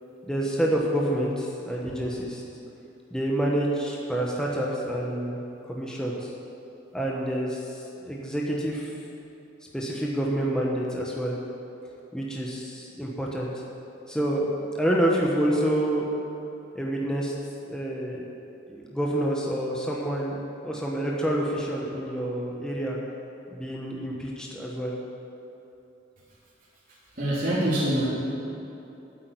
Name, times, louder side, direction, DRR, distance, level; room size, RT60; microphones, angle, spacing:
voice 1, 0.3-2.4 3.1-5.4 5.7-6.3 6.9-9.0 9.7-11.3 12.1-13.5 14.1-16.1 16.7-17.3 17.6-18.2 18.7-20.4 20.6-23.0 23.5-24.9, right 1 dB, 5° left, -3 dB, 1.2 m, -28 dB
voice 2, 27.1-28.1, right 1 dB, 45° right, -8 dB, 3.3 m, -25 dB
8.9 x 8.7 x 9.6 m, 2.9 s
head